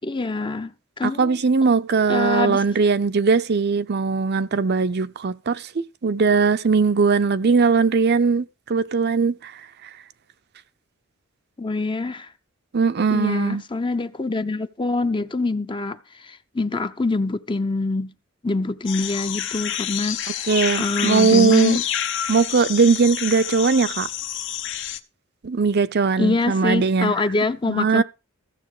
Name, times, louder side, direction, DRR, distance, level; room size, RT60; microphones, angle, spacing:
voice 1, 0.0-1.4 2.1-2.6 11.6-12.3 13.1-18.1 18.4-20.5 20.8-21.8 26.2-28.0, left 3 dB, 25° left, 0.6 m, -25 dB
voice 2, 1.0-9.5 12.7-13.6 20.5-21.8 22.3-24.1 25.4-27.2 27.7-28.0, right 4 dB, 50° right, 0.6 m, -20 dB
sound 1, 18.9-25.0, left 10 dB, 60° left, 0.9 m, -28 dB
15.0 x 7.2 x 4.9 m
head